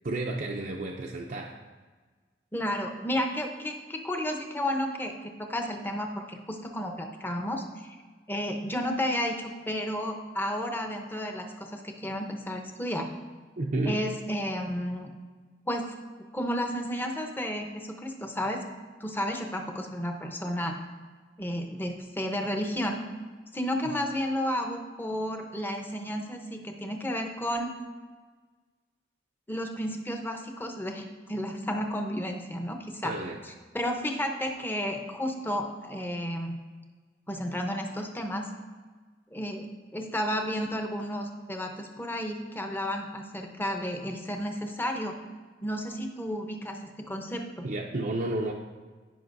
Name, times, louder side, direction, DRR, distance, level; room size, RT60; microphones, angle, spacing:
voice 1, 0.0-1.5 13.6-14.0 33.0-33.4 47.6-48.5, right 2 dB, 50° right, -1 dB, 0.6 m, -31 dB
voice 2, 2.5-8.0 8.3-13.1 13.8-15.1 15.7-15.9 16.3-18.6 19.0-20.8 21.4-23.0 23.5-27.7 29.5-33.2 33.4-36.6 37.3-38.5 39.3-45.2 45.6-47.7, equal, 10° left, 3 dB, 0.8 m, -32 dB
15.0 x 5.4 x 2.6 m, 1.4 s
head